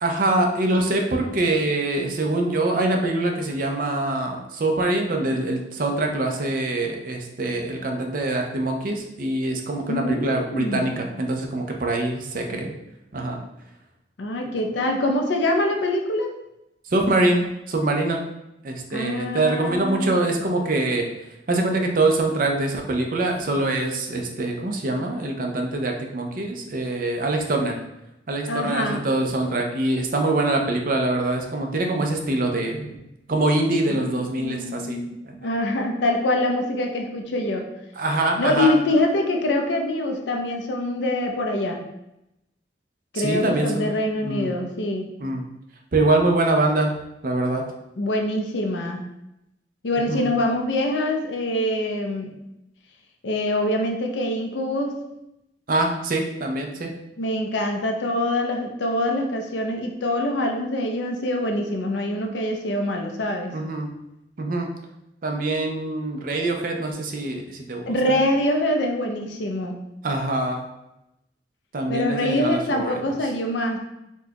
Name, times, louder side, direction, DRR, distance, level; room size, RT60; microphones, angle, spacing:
voice 1, 0.0-12.7 13.1-13.4 16.9-18.2 18.6-21.1 21.5-27.7 28.3-33.0 33.3-35.0 35.3-35.4 38.0-38.7 43.1-43.9 44.2-44.5 45.2-45.4 45.9-46.9 47.2-47.6 50.1-50.2 55.7-56.9 63.5-63.9 64.4-64.7 65.2-68.2 70.0-70.6 71.7-73.0, right 2 dB, 50° right, 2 dB, 0.5 m, -24 dB
voice 2, 9.9-10.9 14.2-16.3 18.9-20.2 28.5-29.0 33.9-37.7 38.4-41.8 43.1-45.1 48.0-49.0 49.8-52.3 53.2-55.0 57.2-63.5 67.9-69.8 71.9-73.8, left 1 dB, 85° left, 2 dB, 0.5 m, -24 dB
4.3 x 2.2 x 2.8 m, 0.87 s
head